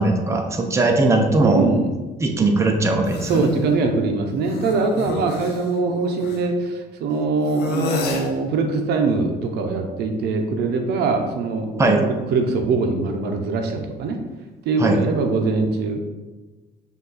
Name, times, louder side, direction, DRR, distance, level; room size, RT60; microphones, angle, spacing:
voice 1, 0.0-1.6 2.2-3.5 11.8-12.0 14.8-15.0, right 2 dB, 15° right, 2 dB, 0.6 m, -19 dB
voice 2, 1.4-1.9 2.3-2.5 3.3-14.2 14.7-16.0, right 4 dB, 75° right, 4 dB, 0.6 m, -22 dB
sound 1, 3.0-3.6 4.3-6.4 7.4-8.3, left 4 dB, 75° left, 0.7 m, -30 dB
5.3 x 2.6 x 3.9 m, 1.2 s
cardioid pair, 110°, 17 cm